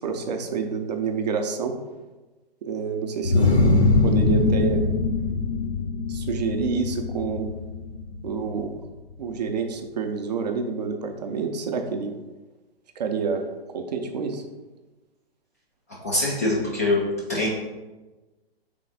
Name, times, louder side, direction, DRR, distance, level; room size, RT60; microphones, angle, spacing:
voice 1, 0.0-1.8 2.6-3.6 4.0-4.8 6.1-7.5 8.2-8.7 9.2-12.1 13.0-13.5 13.7-14.4, right 5 dB, 40° right, 5 dB, 0.6 m, -28 dB
sound 1, 3.2-8.8, left 3 dB, 85° left, 0.9 m, -22 dB
voice 2, 16.0-17.0 17.3-17.5, left 2 dB, 15° left, -5 dB, 0.3 m, -23 dB
3.8 x 3.4 x 4.0 m, 1.2 s
figure-of-eight pair, 125°, 31 cm